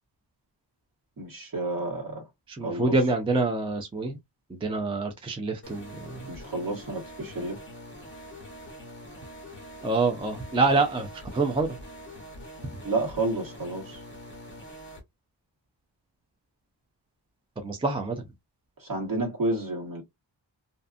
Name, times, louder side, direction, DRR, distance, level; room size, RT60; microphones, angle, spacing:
voice 1, 1.2-2.2 2.6-3.0 6.3-7.6 12.8-14.0 18.8-20.0, right 2 dB, 45° right, 1.3 m, -30 dB
voice 2, 2.5-4.2 4.5-6.3 9.8-11.7 17.6-18.2, right 3 dB, 15° right, 0.3 m, -26 dB
sound 1, 5.6-15.0, equal, 25° left, 1.0 m, -44 dB
2.6 x 2.4 x 2.4 m
wide cardioid pair, 150°, 45 cm